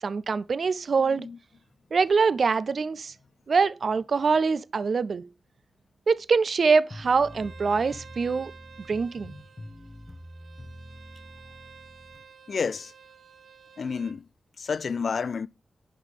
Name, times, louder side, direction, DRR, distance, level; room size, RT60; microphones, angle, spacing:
voice 1, 0.0-1.3 1.9-3.1 3.5-5.3 6.1-8.5 8.9-9.3, right 5 dB, 55° right, 0.4 m, -24 dB
sound 1, 6.9-12.2, left 1 dB, 25° left, 1.6 m, -45 dB
Bowed string instrument, 7.2-14.2, right 6 dB, 70° right, 1.0 m, -52 dB
voice 2, 12.5-12.9 13.8-14.2 14.6-15.5, left 5 dB, 55° left, 0.4 m, -30 dB
11.0 x 3.7 x 6.6 m
wide cardioid pair, 115°, 0 cm